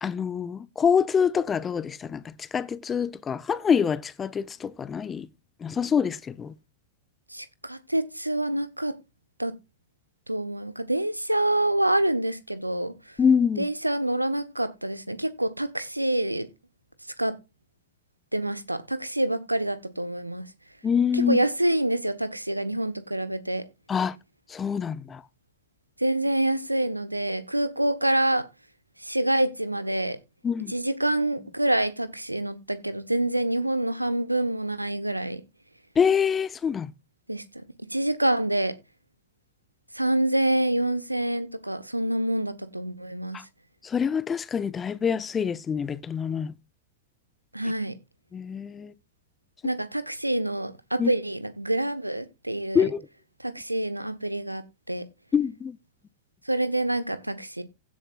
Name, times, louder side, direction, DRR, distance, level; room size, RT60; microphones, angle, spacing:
voice 1, 0.0-5.3 5.6-6.5 13.2-13.7 20.8-21.4 23.9-24.1 24.5-25.2 30.4-30.7 36.0-36.9 43.3-43.4 43.8-46.5 48.3-48.9 51.0-51.1 52.7-53.1 55.3-55.8, left 7 dB, 20° left, 0.7 m, -25 dB
voice 2, 7.3-8.9 9.4-9.5 10.3-12.9 13.6-16.5 17.2-17.3 18.3-20.4 21.1-23.6 26.0-28.4 29.0-30.2 30.7-35.4 37.3-37.4 37.9-38.7 39.9-43.4 47.5-47.9 49.6-52.9 53.4-54.6 54.9-55.0 56.5-57.6, right 1 dB, 85° right, 1.1 m, -26 dB
16.0 x 7.7 x 2.5 m
figure-of-eight pair, 90°, 0 cm